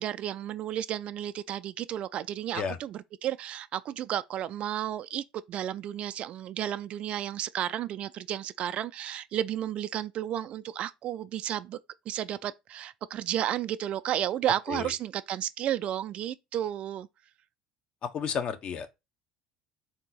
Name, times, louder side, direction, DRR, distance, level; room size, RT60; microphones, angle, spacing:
voice 1, 0.0-11.8 12.1-17.1, right 11 dB, 50° right, 0.3 m, -32 dB
voice 2, 18.1-18.9, left 7 dB, 45° left, 0.7 m, -32 dB
3.8 x 2.8 x 3.8 m
hypercardioid pair, 70°, 3 cm